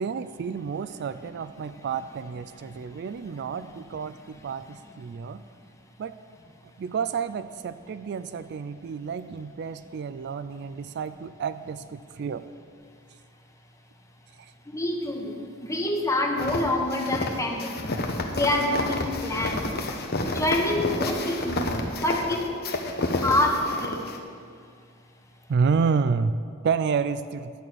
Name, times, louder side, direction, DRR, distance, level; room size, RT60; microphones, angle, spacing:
voice 1, 0.0-5.4 6.0-6.1 6.8-12.4 14.4-14.5 25.5-27.5, right 5 dB, 55° right, 13 dB, 0.3 m, -30 dB
voice 2, 14.7-18.0 18.3-19.8 20.2-22.6 23.2-24.0, left 1 dB, 15° left, 2 dB, 1.1 m, -27 dB
sound 1, 16.4-24.2, left 2 dB, 50° left, 1.1 m, -30 dB
11.5 x 6.2 x 9.0 m, 2.2 s
head